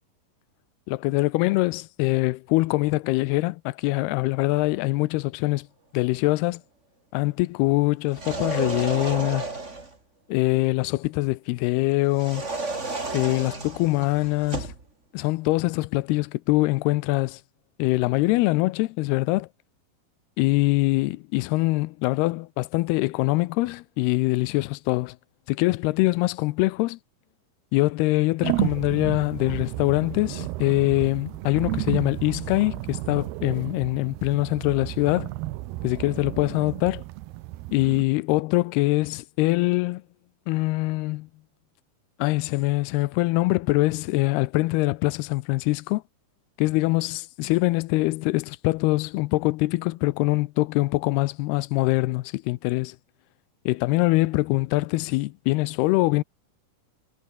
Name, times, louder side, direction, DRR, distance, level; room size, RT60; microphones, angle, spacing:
voice 1, 0.9-5.7 5.9-6.6 7.1-9.5 10.3-12.5 13.1-14.7 15.1-17.4 17.8-19.5 20.4-25.2 25.5-27.0 27.7-35.3 35.8-37.0 37.7-40.0 40.5-41.3 42.2-46.0 46.6-53.0 53.7-56.2, left 21 dB, 85° left, 2.6 m, -23 dB
sound 1, 8.1-10.0 12.1-14.8, right 3 dB, 20° right, 3.2 m, -32 dB
sound 2, 28.4-38.0, right 18 dB, 85° right, 2.8 m, -32 dB
omnidirectional pair, 4.6 m